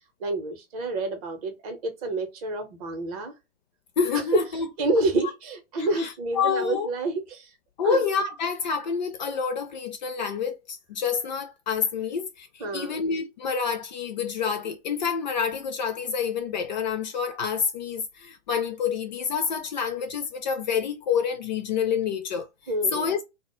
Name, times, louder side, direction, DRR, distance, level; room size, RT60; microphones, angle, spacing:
voice 1, 0.2-3.3 4.3-4.4 4.8-7.5 7.8-8.0 12.6-13.0 22.7-23.1, right 2 dB, 35° right, 0.7 m, -28 dB
voice 2, 4.0-4.7 5.8-6.9 7.8-22.5 22.9-23.3, left 6 dB, 40° left, 0.4 m, -28 dB
2.1 x 2.0 x 2.9 m
hypercardioid pair, 125°, 35 cm